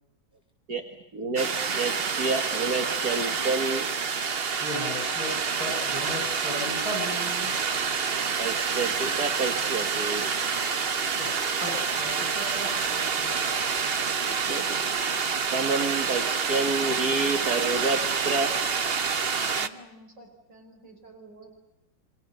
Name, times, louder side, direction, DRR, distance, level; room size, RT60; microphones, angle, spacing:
voice 1, 1.1-3.9 8.4-10.3 14.3-14.8 15.5-18.0 18.2-18.5, right 3 dB, 60° right, 4 dB, 2.3 m, -29 dB
sound 1, 1.4-19.7, right 5 dB, 40° right, 1.0 m, -28 dB
voice 2, 4.6-7.5 11.2-11.3 11.6-13.5, left 1 dB, 20° left, 3 dB, 8.2 m, -36 dB
voice 3, 19.6-21.5, right 2 dB, 80° right, 3 dB, 6.1 m, -50 dB
29.0 x 23.5 x 6.8 m, 0.92 s
omnidirectional pair, 1.9 m